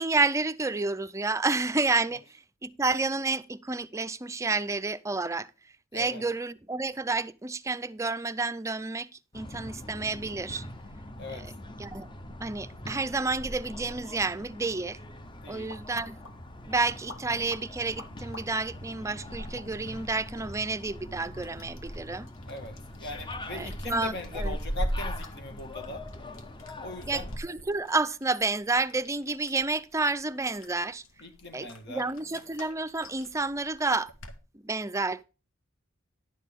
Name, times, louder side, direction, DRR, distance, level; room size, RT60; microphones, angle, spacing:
voice 1, 0.0-2.2 2.6-5.5 5.9-9.1 9.3-10.6 11.3-11.5 11.8-12.1 12.4-15.0 15.5-16.2 16.7-22.3 23.5-24.6 27.0-31.0 31.5-34.1 34.6-35.3, right 3 dB, 15° right, 0.4 m, -30 dB
sound 1, 9.3-27.4, left 1 dB, 25° left, 0.8 m, -43 dB
sound 2, 15.2-34.4, equal, 90° left, 1.5 m, -42 dB
voice 2, 15.4-15.7 22.5-26.0 26.8-27.3 31.2-32.1, left 2 dB, 60° left, 1.9 m, -40 dB
11.0 x 6.5 x 3.6 m
head